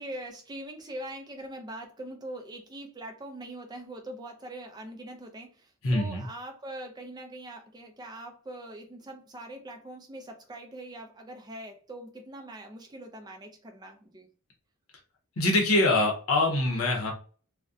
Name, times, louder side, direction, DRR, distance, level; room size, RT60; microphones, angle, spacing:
voice 1, 0.0-14.3, right 1 dB, 20° right, 4 dB, 0.4 m, -42 dB
voice 2, 5.8-6.2 15.4-17.1, left 2 dB, 85° left, 0 dB, 0.7 m, -24 dB
2.6 x 2.1 x 2.3 m, 0.39 s
head